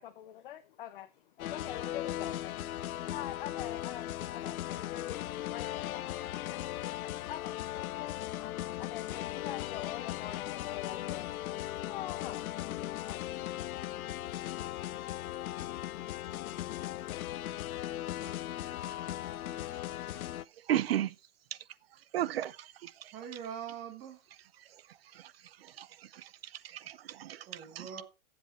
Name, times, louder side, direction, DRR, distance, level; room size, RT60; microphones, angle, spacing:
voice 1, 0.0-12.5, left 12 dB, 40° left, 0.7 m, -45 dB
sound 1, 1.4-20.4, left 14 dB, 80° left, 0.6 m, -38 dB
voice 2, 20.7-21.1 22.1-22.9 25.2-25.3 25.8-25.9 26.1-26.3 26.7-27.9, right 12 dB, 45° right, 0.5 m, -33 dB
voice 3, 23.1-24.2 27.5-28.0, right 8 dB, 20° right, 1.2 m, -44 dB
14.0 x 7.8 x 3.0 m
hypercardioid pair, 170°, 42 cm